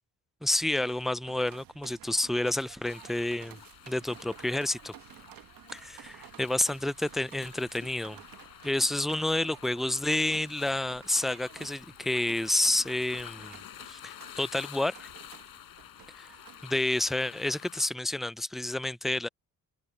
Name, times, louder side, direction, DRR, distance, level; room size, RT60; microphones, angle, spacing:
voice 1, 0.4-3.6 3.9-4.9 5.7-8.2 8.6-13.6 13.9-15.1 16.2-16.3 16.6-19.3, left 1 dB, ahead, 0.3 m, -29 dB
sound 1, 0.8-17.5, right 12 dB, 75° right, 1.3 m, -52 dB
sound 2, 2.9-17.9, left 12 dB, 75° left, 4.3 m, -50 dB
cardioid pair, 115°, 35 cm